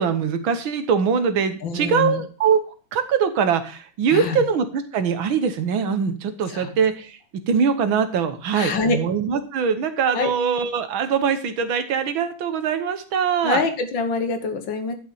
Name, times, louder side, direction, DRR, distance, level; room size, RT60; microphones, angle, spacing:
voice 1, 0.0-2.6 2.9-13.6, right 6 dB, 85° right, 9 dB, 1.9 m, -22 dB
voice 2, 1.6-2.2 4.1-4.4 6.5-6.7 8.5-9.0 10.1-10.3 13.4-14.9, left 4 dB, 70° left, 7 dB, 2.0 m, -25 dB
11.5 x 5.6 x 5.5 m, 0.38 s
omnidirectional pair, 2.1 m